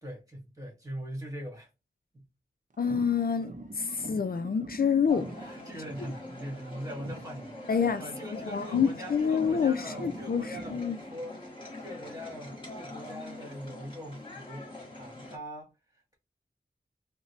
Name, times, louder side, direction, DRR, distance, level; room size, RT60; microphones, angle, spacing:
voice 1, 0.0-1.7 2.1-2.2 5.4-7.6 8.0-11.4 11.8-14.7 15.0-15.7, equal, 20° right, 1.8 m, -41 dB
sound 1, 2.7-6.6 6.9-10.9, right 2 dB, 50° right, 0.6 m, -45 dB
voice 2, 2.8-5.3 7.7-8.0 8.3-11.0, left 6 dB, 60° left, 0.4 m, -27 dB
sound 2, 5.1-15.4, left 1 dB, 30° left, 1.5 m, -44 dB
3.9 x 2.2 x 3.1 m
wide cardioid pair, 65°, 17 cm